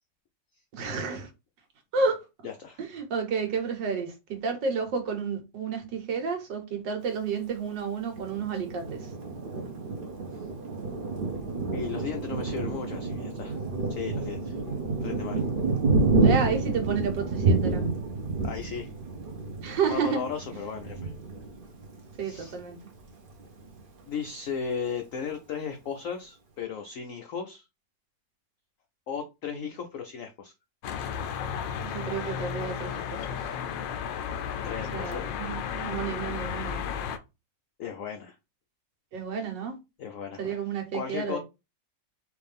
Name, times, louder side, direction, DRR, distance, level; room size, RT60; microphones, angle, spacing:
voice 1, 0.7-1.3 1.9-2.2 2.8-9.1 16.2-17.8 19.6-20.2 22.2-22.8 31.8-33.4 34.9-36.8 39.1-39.7 40.4-41.4, right 5 dB, 75° right, 1.7 m, -31 dB
voice 2, 2.4-2.8 11.7-13.6 13.9-14.6 15.0-15.4 18.4-18.9 19.8-21.1 22.2-22.6 24.1-27.6 29.1-30.5 34.6-35.3 37.8-38.3 40.0-40.6 40.9-41.4, left 6 dB, 70° left, 0.8 m, -35 dB
Thunder, 8.1-22.5 23.0-23.1 23.4-24.0, right 3 dB, 50° right, 0.7 m, -29 dB
sound 1, 30.8-37.2, left 8 dB, 90° left, 1.3 m, -33 dB
4.6 x 2.6 x 3.4 m
omnidirectional pair, 2.0 m